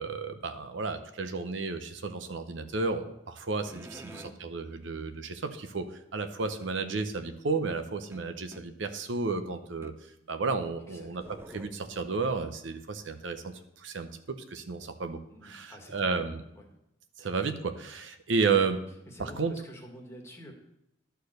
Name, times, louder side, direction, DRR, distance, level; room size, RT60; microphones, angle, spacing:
voice 1, 0.0-9.9 10.3-11.2 11.5-16.4 17.2-18.8 19.2-19.5, right 4 dB, 70° right, 8 dB, 0.7 m, -32 dB
sound 1, 3.7-4.4 6.4-6.7 8.1-8.7 9.8-10.0 10.6-12.3, right 1 dB, 15° right, 0.4 m, -49 dB
voice 2, 3.9-4.4 8.3-8.4 10.9-11.1 15.3-16.3 16.6-16.7 19.1-20.5, equal, 15° left, 0 dB, 1.6 m, -48 dB
11.5 x 4.5 x 6.5 m, 0.82 s
head